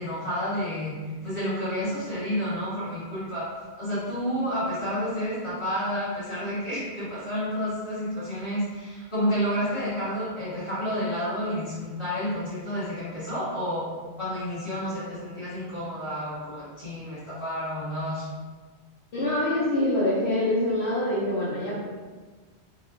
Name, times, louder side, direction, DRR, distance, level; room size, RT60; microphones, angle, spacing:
voice 1, 0.0-3.5 3.7-13.9 14.2-18.3, equal, 25° left, -12 dB, 1.4 m, -30 dB
voice 2, 19.1-21.8, left 1 dB, 75° left, -7 dB, 0.9 m, -25 dB
3.3 x 2.3 x 2.4 m, 1.4 s
omnidirectional pair, 1.1 m